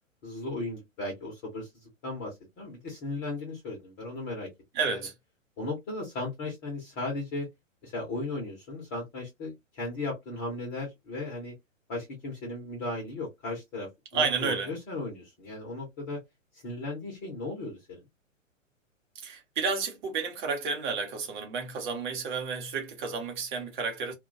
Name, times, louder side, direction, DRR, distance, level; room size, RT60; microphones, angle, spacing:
voice 1, 0.2-4.5 4.9-5.0 5.6-7.5 7.8-11.5 11.9-16.2 16.5-18.0, left 2 dB, 15° left, 0.5 m, -36 dB
voice 2, 4.7-5.1 14.1-14.7 19.2-24.1, right 5 dB, 40° right, 0.8 m, -31 dB
2.2 x 2.1 x 2.6 m
figure-of-eight pair, 110°, 39 cm